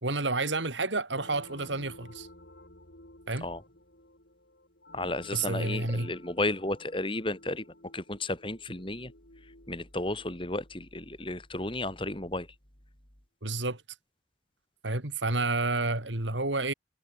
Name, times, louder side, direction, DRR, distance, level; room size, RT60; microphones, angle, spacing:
voice 1, 0.0-2.3 3.3-3.5 5.3-6.1 13.4-13.8 14.8-16.7, right 3 dB, 80° right, 3.7 m, -30 dB
sound 1, 1.1-11.6, left 1 dB, 65° left, 7.3 m, -53 dB
voice 2, 4.9-7.6 7.9-9.1 9.7-12.5, left 2 dB, 25° left, 2.7 m, -33 dB
head